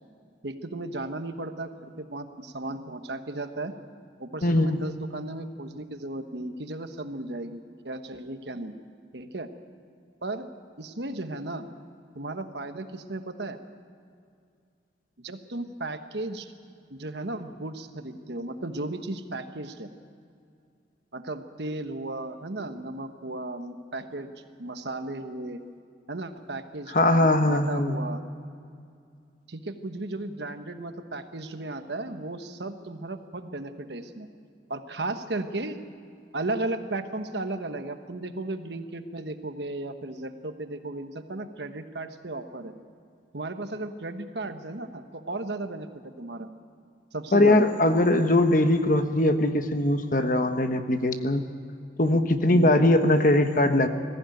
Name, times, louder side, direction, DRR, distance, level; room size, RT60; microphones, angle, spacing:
voice 1, 0.4-1.7 2.0-3.7 4.2-7.6 7.8-8.7 9.1-9.5 10.2-10.5 10.8-11.7 12.1-13.6 15.2-16.5 16.9-19.9 21.1-24.3 24.6-25.6 26.1-28.2 29.5-34.3 34.7-35.8 36.3-42.7 43.3-45.9 46.2-46.5 47.1-47.7 52.1-52.2 52.5-52.7, right 2 dB, 70° right, 8 dB, 1.3 m, -35 dB
voice 2, 4.4-4.8 26.9-28.0 47.3-51.4 52.0-53.9, left 1 dB, 45° left, 7 dB, 1.2 m, -21 dB
21.0 x 15.0 x 9.2 m, 2.3 s
head